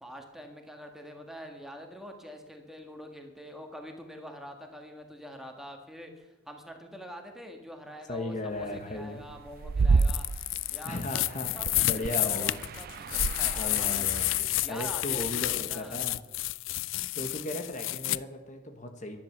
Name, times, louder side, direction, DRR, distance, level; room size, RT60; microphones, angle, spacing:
voice 1, 0.0-10.2 10.7-11.2 11.5-11.7 12.0-14.1 14.6-16.0, equal, ahead, 3 dB, 1.7 m, -45 dB
voice 2, 8.1-9.2 10.8-11.5 11.8-12.6 13.6-16.2 17.1-19.2, left 1 dB, 40° left, 6 dB, 1.3 m, -36 dB
sound 1, 8.6-10.6 11.4-14.4, right 4 dB, 50° right, 0.4 m, -29 dB
sound 2, 10.0-18.2, left 17 dB, 80° left, 0.4 m, -30 dB
12.0 x 10.5 x 7.3 m, 1.1 s
head